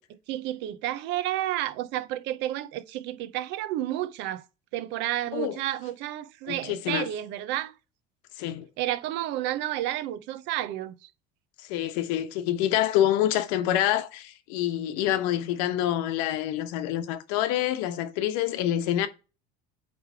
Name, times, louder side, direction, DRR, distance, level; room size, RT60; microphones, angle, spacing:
voice 1, 0.0-4.4 4.7-7.7 8.8-11.1, right 13 dB, 60° right, 0.7 m, -31 dB
voice 2, 6.5-7.1 8.4-8.7 11.6-19.1, left 12 dB, 80° left, 1.1 m, -27 dB
8.5 x 3.4 x 4.5 m
cardioid pair, 155°, 21 cm